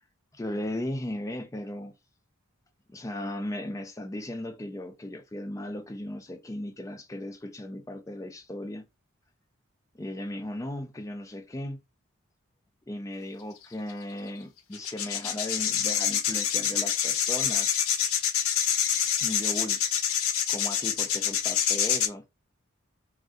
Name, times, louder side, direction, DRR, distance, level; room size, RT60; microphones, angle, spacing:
voice 1, 0.3-1.9 2.9-8.8 9.9-11.8 12.9-17.8 19.2-19.8 20.5-22.2, left 1 dB, 15° left, 0.3 m, -36 dB
sound 1, 13.9-14.0 14.7-22.1, left 9 dB, 85° left, 0.6 m, -26 dB
2.5 x 2.2 x 3.5 m
head